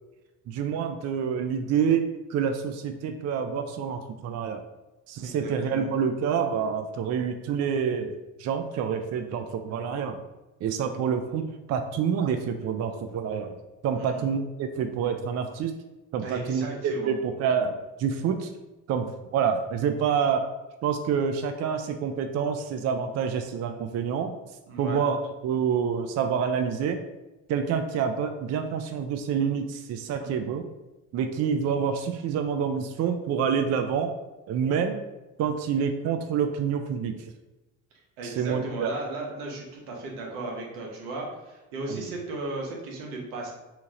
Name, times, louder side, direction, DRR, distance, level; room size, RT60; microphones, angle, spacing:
voice 1, 0.5-4.6 5.1-10.2 10.6-13.5 13.8-15.7 16.1-18.5 18.9-20.5 20.8-24.4 24.8-25.2 25.4-27.0 27.5-30.6 31.1-34.1 34.5-35.0 35.4-37.2 38.2-38.9 41.9-42.1, right 7 dB, 45° right, 6 dB, 0.4 m, -27 dB
voice 2, 5.2-5.9 13.9-14.3 16.2-17.1 24.7-25.0 30.2-30.4 38.2-43.5, right 2 dB, 90° right, -1 dB, 1.1 m, -36 dB
2.9 x 2.8 x 3.7 m, 1.1 s
supercardioid pair, 85°, 36 cm